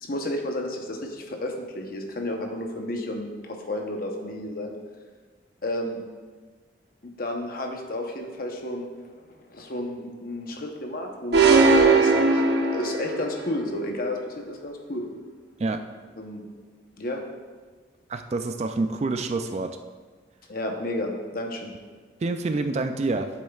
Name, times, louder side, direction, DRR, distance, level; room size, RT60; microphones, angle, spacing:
voice 1, 0.0-4.7 5.6-6.0 7.0-8.9 9.5-15.1 16.2-16.5 17.0-17.2 20.5-21.7, left 1 dB, 50° left, 2 dB, 0.9 m, -32 dB
sound 1, 11.3-13.3, right 3 dB, 60° right, 0.7 m, -18 dB
voice 2, 18.1-19.8 22.2-23.3, right 3 dB, 35° right, 8 dB, 0.3 m, -27 dB
9.9 x 7.6 x 2.4 m, 1.4 s
head